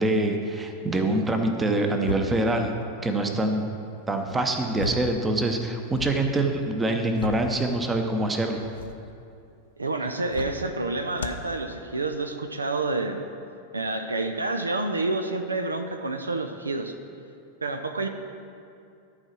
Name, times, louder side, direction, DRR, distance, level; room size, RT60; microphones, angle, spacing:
voice 1, 0.0-2.7 3.0-3.7 4.1-8.7, right 2 dB, 15° right, 4 dB, 0.9 m, -25 dB
sound 1, 2.0-2.6 4.1-5.2 5.5-6.2 6.8-7.6 8.5-9.0 10.2-10.7 11.1-11.5, left 3 dB, 65° left, 0.5 m, -35 dB
voice 2, 9.8-13.3 13.7-16.9 17.6-18.1, right 2 dB, 80° right, 6 dB, 0.5 m, -28 dB
12.5 x 4.8 x 6.0 m, 2.6 s
figure-of-eight pair, 90°, 0 cm